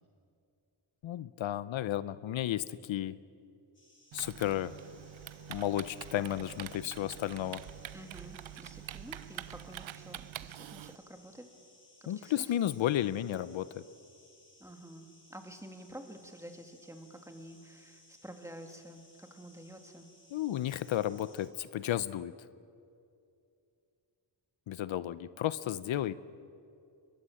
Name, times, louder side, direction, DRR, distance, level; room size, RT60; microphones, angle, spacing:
voice 1, 1.0-3.1 4.1-4.7 5.5-7.6 12.1-13.8 20.3-22.3 24.7-26.1, left 12 dB, 80° left, 16 dB, 0.7 m, -33 dB
sound 1, 3.7-21.5, left 2 dB, 25° left, 7.0 m, -62 dB
Typing, 4.1-11.0, right 13 dB, 80° right, 0.7 m, -46 dB
voice 2, 7.9-11.4 12.0-12.5 14.6-20.1, right 1 dB, 5° right, 4 dB, 2.7 m, -49 dB
23.0 x 21.5 x 7.7 m, 2.6 s
cardioid pair, 75°, 46 cm